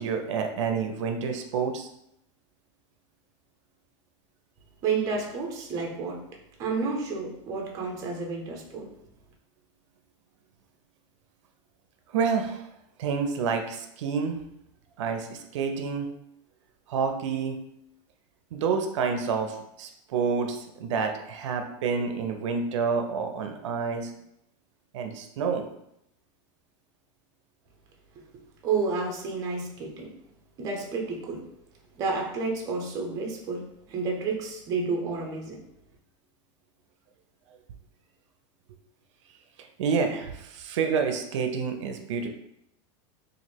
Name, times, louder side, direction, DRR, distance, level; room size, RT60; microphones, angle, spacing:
voice 1, 0.0-1.9 12.1-12.7 13.0-14.4 15.0-16.1 16.9-17.6 18.5-24.1 24.9-25.7 39.8-42.3, right 5 dB, 80° right, 5 dB, 0.5 m, -28 dB
voice 2, 4.8-6.2 6.6-8.9 28.6-30.1 30.6-31.4 32.0-33.6 33.9-35.6, right 4 dB, 25° right, 0 dB, 0.6 m, -30 dB
3.0 x 2.6 x 4.3 m, 0.78 s
supercardioid pair, 175°, 15 cm